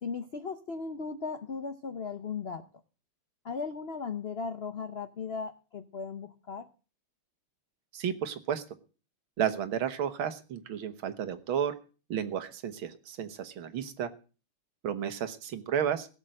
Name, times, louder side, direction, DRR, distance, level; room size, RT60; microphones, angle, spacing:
voice 1, 0.0-2.6 3.4-6.6, left 5 dB, 90° left, 9 dB, 0.5 m, -37 dB
voice 2, 7.9-8.6 9.4-11.7 12.1-14.1 14.8-16.1, right 9 dB, 75° right, 10 dB, 2.0 m, -32 dB
17.0 x 6.8 x 7.7 m, 0.37 s
omnidirectional pair, 2.3 m